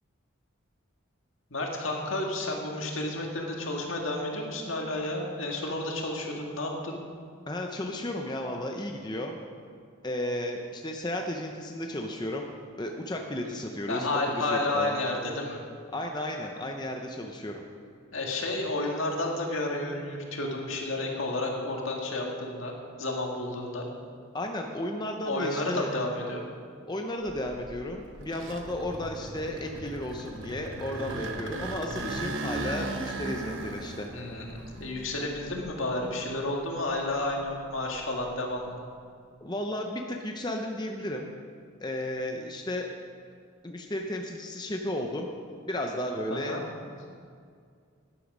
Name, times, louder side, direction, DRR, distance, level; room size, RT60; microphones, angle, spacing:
voice 1, 1.5-7.0 13.9-15.6 18.1-22.7 23.0-23.9 25.2-26.5 34.1-38.8 46.3-46.6, left 2 dB, 70° left, 0 dB, 1.8 m, -31 dB
voice 2, 7.5-9.4 10.0-12.5 12.8-14.1 14.3-15.0 15.9-17.6 24.3-25.9 26.8-34.1 39.4-41.3 41.8-42.9 43.6-45.3 45.7-46.6, left 1 dB, 20° left, 2 dB, 0.6 m, -34 dB
sound 1, 27.3-36.3 36.8-38.6, right 2 dB, 65° right, 1.1 m, -38 dB
11.0 x 10.5 x 5.3 m, 2.2 s
head